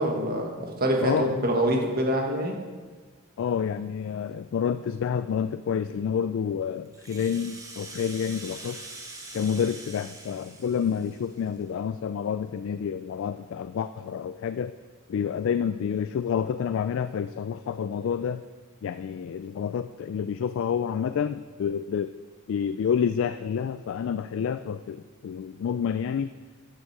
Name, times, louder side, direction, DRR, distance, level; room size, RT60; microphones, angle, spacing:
voice 1, 0.0-2.6, right 1 dB, 45° right, 1 dB, 1.5 m, -25 dB
voice 2, 1.0-1.5 3.4-8.9 9.3-14.8 15.1-18.4 18.8-22.2 22.5-26.3, left 7 dB, 65° left, 12 dB, 0.3 m, -29 dB
Rattle (instrument), 6.9-11.6, right 2 dB, 15° right, 1.2 m, -43 dB
12.0 x 6.3 x 4.7 m, 1.4 s
head